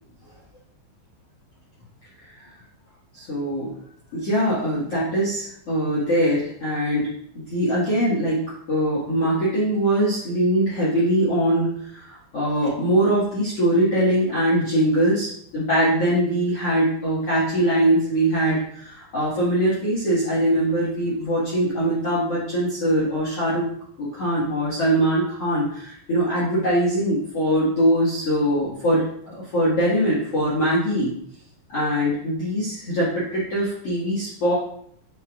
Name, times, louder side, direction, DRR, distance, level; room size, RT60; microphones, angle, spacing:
voice 1, 3.1-3.7 4.1-7.1 7.5-23.7 24.0-31.1 31.7-34.5, right 1 dB, 65° left, -8 dB, 1.5 m, -22 dB
8.9 x 5.2 x 2.4 m, 0.66 s
omnidirectional pair, 5.4 m